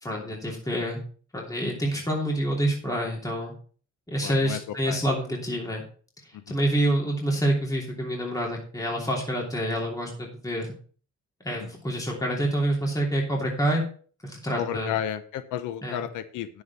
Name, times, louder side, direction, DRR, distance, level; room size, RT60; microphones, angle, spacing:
voice 1, 0.0-1.0 1.3-3.5 4.1-5.8 6.5-10.7 11.4-13.8 14.2-14.9 15.8-16.0, right 1 dB, 10° left, -2 dB, 2.9 m, -27 dB
voice 2, 4.2-5.0 6.3-6.6 11.5-11.7 14.5-16.6, left 10 dB, 90° left, 12 dB, 0.8 m, -33 dB
9.9 x 7.2 x 4.2 m, 0.43 s
cardioid pair, 90°, 30 cm